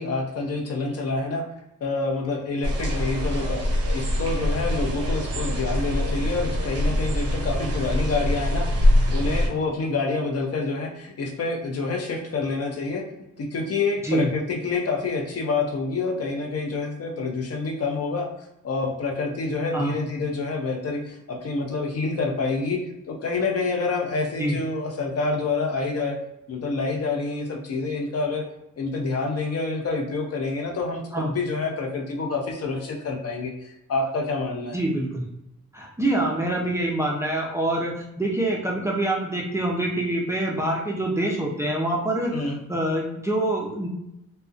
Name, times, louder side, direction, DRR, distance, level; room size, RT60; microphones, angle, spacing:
voice 1, 0.0-1.4 1.8-3.6 3.9-13.0 13.4-18.3 18.6-22.8 23.1-26.2 26.5-28.4 28.8-33.5 33.9-34.8 42.3-42.6, left 3 dB, 55° left, 1 dB, 0.6 m, -27 dB
sound 1, 2.6-9.5, left 1 dB, 55° right, 0.6 m, -24 dB
voice 2, 34.7-35.2 35.7-44.1, right 1 dB, 10° right, -2 dB, 0.4 m, -26 dB
2.5 x 2.1 x 2.3 m, 0.85 s
cardioid pair, 100°, 30 cm